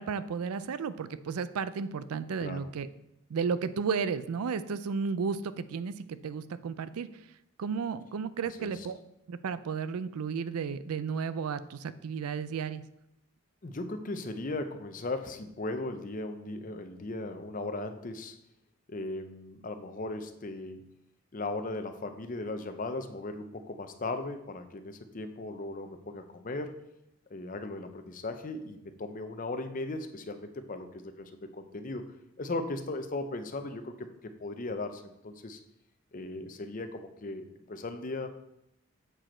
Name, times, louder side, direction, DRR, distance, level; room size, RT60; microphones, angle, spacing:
voice 1, 0.0-2.9 3.3-7.1 7.6-9.0 9.3-12.8, right 5 dB, 90° right, 14 dB, 0.4 m, -33 dB
voice 2, 13.6-18.4 18.9-20.9 21.3-26.7 27.3-32.0 32.4-35.6 36.1-38.3, left 2 dB, 40° left, 8 dB, 0.6 m, -37 dB
7.7 x 4.9 x 4.3 m, 0.82 s
head